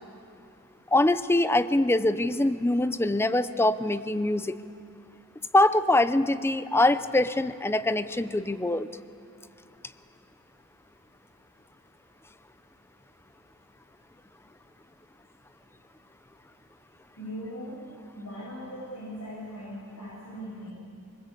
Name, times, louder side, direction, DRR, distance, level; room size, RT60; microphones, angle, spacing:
voice 1, 0.9-4.6 5.5-8.9, left 2 dB, 10° left, 13 dB, 0.6 m, -23 dB
voice 2, 17.1-17.8 18.1-20.7, equal, 80° left, -7 dB, 7.8 m, -39 dB
25.5 x 20.5 x 8.5 m, 2.6 s
head